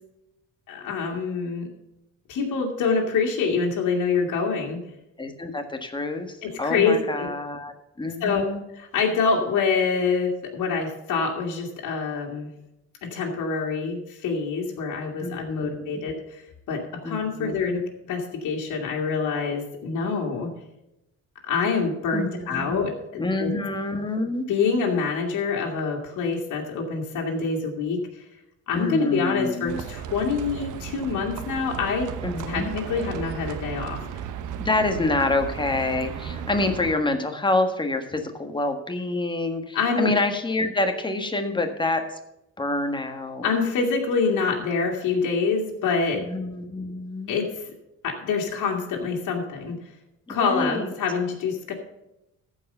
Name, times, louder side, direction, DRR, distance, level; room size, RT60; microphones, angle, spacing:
voice 1, 0.7-1.7 2.3-4.8 6.4-7.3 8.2-8.5 8.7-12.5 13.0-16.4 16.7-20.5 21.4-23.5 24.5-28.1 28.7-32.1 32.5-34.0 39.7-40.1 43.4-46.3 47.3-47.6 48.0-49.8 50.3-51.7, left 5 dB, 85° left, -1 dB, 2.1 m, -26 dB
voice 2, 5.2-8.6 15.2-15.9 17.0-17.6 22.1-22.8 23.2-24.4 28.7-29.8 32.2-32.7 34.6-42.0 42.6-43.5 46.2-47.3 50.3-50.9, left 2 dB, 15° left, 5 dB, 1.5 m, -27 dB
Livestock farm animals working animals, 29.7-37.0, right 8 dB, 80° right, 1.0 m, -35 dB
14.5 x 4.9 x 6.7 m, 0.90 s
cardioid pair, 90°, 30 cm